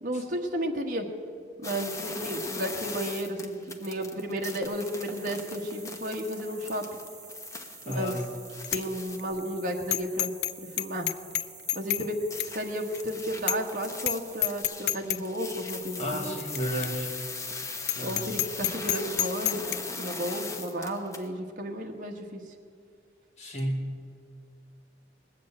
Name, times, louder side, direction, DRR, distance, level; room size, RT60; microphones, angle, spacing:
voice 1, 0.0-1.1 1.6-6.8 7.8-8.1 8.7-10.3 10.8-11.1 11.7-12.2 12.5-16.4 18.0-22.4, equal, 50° right, 1 dB, 1.4 m, -33 dB
sound 1, 1.6-9.2 12.3-21.3, left 3 dB, 15° left, 0.9 m, -40 dB
sound 2, 4.6-14.6, right 3 dB, 20° right, 3.3 m, -48 dB
voice 2, 7.8-8.3 16.0-17.1 17.9-18.3 23.4-23.9, equal, 40° left, -1 dB, 2.6 m, -32 dB
Bicycle bell, 7.9-8.3 8.6-8.8 9.2-9.3 9.9-10.5 10.8-12.1 12.4-12.5 12.9-13.0 13.5-13.7 14.0-14.2 14.4-15.2 15.7-15.8 16.6-16.7 16.8-16.9 17.3-17.4 17.8-19.8, left 15 dB, 65° left, 0.4 m, -28 dB
19.5 x 7.4 x 8.7 m, 2.2 s
head